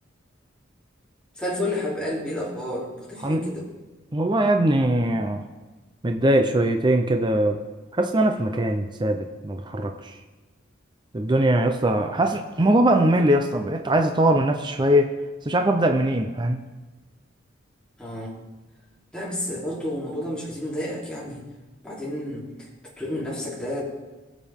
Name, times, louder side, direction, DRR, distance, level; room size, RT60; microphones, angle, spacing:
voice 1, 1.4-3.7 18.0-18.4 19.1-21.4 21.8-22.7 23.0-23.8, left 1 dB, 5° left, -6 dB, 3.3 m, -30 dB
voice 2, 4.1-5.4 6.0-7.6 7.9-10.1 11.1-15.1 15.4-16.6, right 1 dB, 25° right, 5 dB, 0.6 m, -21 dB
20.0 x 7.6 x 3.6 m, 1.2 s
head